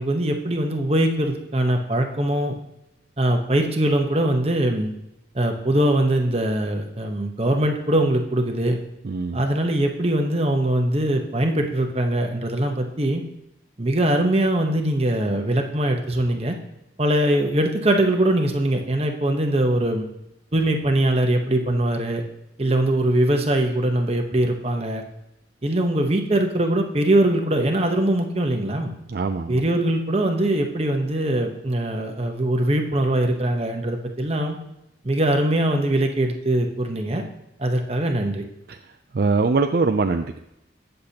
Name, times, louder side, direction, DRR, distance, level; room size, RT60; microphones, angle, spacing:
voice 1, 0.0-2.6 3.2-4.9 5.3-8.8 9.3-13.2 13.8-16.6 17.0-20.0 20.5-22.2 22.6-25.0 25.6-28.9 29.5-34.6 35.0-37.2 37.6-38.4, right 1 dB, 35° right, 4 dB, 1.0 m, -22 dB
voice 2, 9.0-9.4 29.1-29.6 38.7-38.8 39.1-40.3, right 4 dB, 55° right, 6 dB, 0.4 m, -22 dB
18.0 x 6.8 x 2.9 m, 0.88 s
head